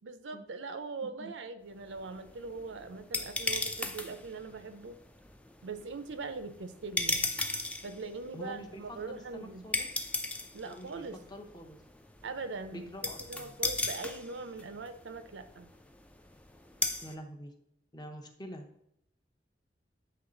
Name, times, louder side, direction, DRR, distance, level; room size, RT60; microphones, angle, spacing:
voice 1, 0.0-5.0 5.6-7.3 7.8-9.7 10.5-11.2 12.2-12.9 13.3-15.7, right 4 dB, 80° right, 10 dB, 0.6 m, -41 dB
sound 1, 1.8-17.1, left 2 dB, 5° left, 0.3 m, -38 dB
voice 2, 8.3-9.9 10.7-11.8 12.7-13.5 17.0-17.5 17.9-18.7, equal, 25° left, 3 dB, 0.7 m, -46 dB
8.8 x 3.2 x 3.8 m, 0.78 s
head